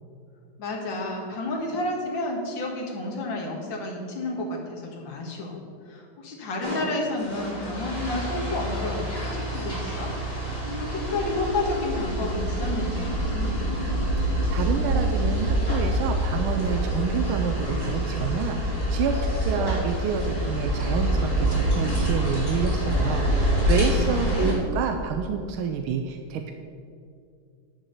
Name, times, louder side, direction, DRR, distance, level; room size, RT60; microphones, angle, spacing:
voice 1, 0.6-5.6 5.9-10.1 10.6-13.8 23.6-24.8, left 2 dB, 65° left, -1 dB, 2.3 m, -31 dB
sound 1, 6.6-24.5, equal, 10° left, 2.9 m, -26 dB
voice 2, 14.2-26.5, right 6 dB, 85° right, 6 dB, 1.5 m, -28 dB
10.0 x 6.2 x 6.6 m, 2.4 s
omnidirectional pair, 2.3 m